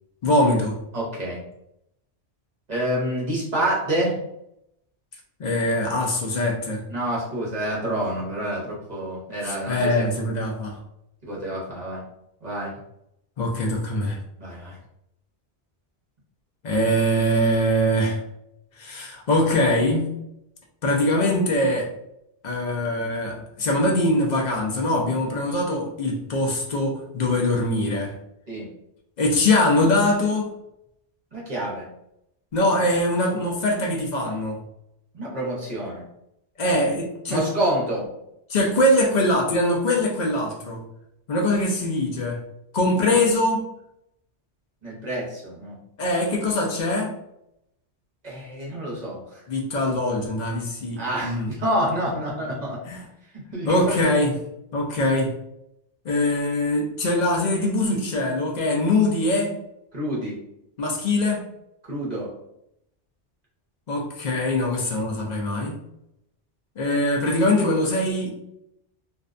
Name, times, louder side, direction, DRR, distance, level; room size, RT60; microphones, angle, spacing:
voice 1, 0.2-0.8 5.4-6.8 9.4-10.8 13.4-14.2 16.6-18.2 18.8-20.1 20.8-21.9 22.4-28.1 29.2-30.5 32.5-34.6 36.6-37.5 38.5-40.8 41.3-42.4 42.7-43.6 46.0-47.1 49.5-51.5 52.9-53.1 53.6-54.3 54.7-55.3 56.0-59.5 60.8-61.4 63.9-65.8 66.8-68.3, left 1 dB, 55° left, 0 dB, 0.5 m, -22 dB
voice 2, 0.9-1.4 2.7-4.2 6.9-10.0 11.2-12.0 12.4-12.7 14.4-14.8 28.5-28.7 31.3-31.8 35.1-36.0 37.3-38.1 44.8-45.7 48.2-49.4 51.0-52.8 53.3-54.0 59.9-60.4 61.8-62.3, right 1 dB, 40° right, -5 dB, 0.9 m, -28 dB
2.5 x 2.1 x 2.4 m, 0.79 s
omnidirectional pair, 1.2 m